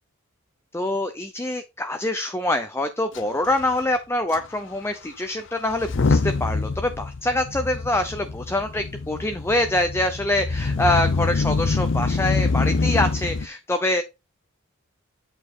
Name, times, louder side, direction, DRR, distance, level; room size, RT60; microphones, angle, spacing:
voice 1, 0.7-14.0, left 1 dB, 10° left, 7 dB, 0.6 m, -25 dB
Motor vehicle (road) / Engine starting / Accelerating revving vroom, 3.1-3.2 3.4-3.7 4.3-4.4 5.7-13.5, left 3 dB, 60° left, 0.6 m, -25 dB
8.7 x 4.9 x 4.1 m, 0.26 s
head